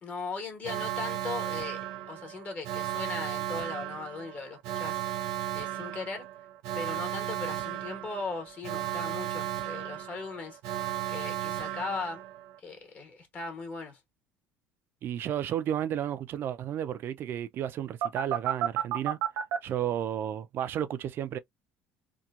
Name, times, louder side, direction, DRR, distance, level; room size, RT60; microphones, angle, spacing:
voice 1, 0.0-1.8 2.1-5.1 5.5-6.2 6.7-10.6 11.1-12.2 12.6-14.0, left 4 dB, 30° left, 1.2 m, -38 dB
Alarm, 0.6-12.5 18.0-19.6, right 12 dB, 85° right, 0.8 m, -34 dB
voice 2, 15.0-19.2 19.6-21.4, right 10 dB, 45° right, 0.4 m, -32 dB
2.8 x 2.2 x 2.4 m
cardioid pair, 125°, 5 cm